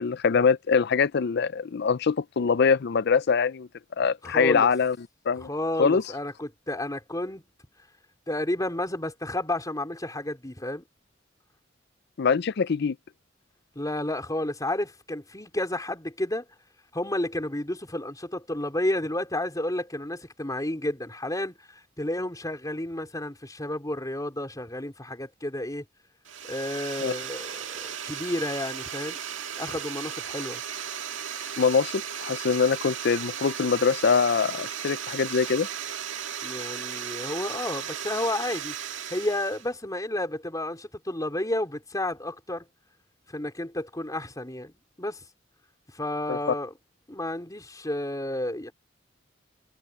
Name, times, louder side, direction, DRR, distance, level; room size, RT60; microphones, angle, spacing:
voice 1, 0.0-3.7 4.0-5.0 5.3-5.5 5.8-6.0 12.2-13.0 27.0-27.1 31.6-35.7 46.3-46.4, left 5 dB, 60° left, 0.5 m, -23 dB
voice 2, 4.2-4.7 5.4-7.4 8.3-10.8 13.7-16.4 16.9-25.8 26.5-29.2 29.6-30.6 36.4-42.6 43.3-44.7 45.0-45.2 45.9-46.7 47.1-48.7, left 1 dB, 20° left, 4.4 m, -31 dB
sound 1, 26.2-39.7, right 8 dB, 85° right, 2.0 m, -36 dB
head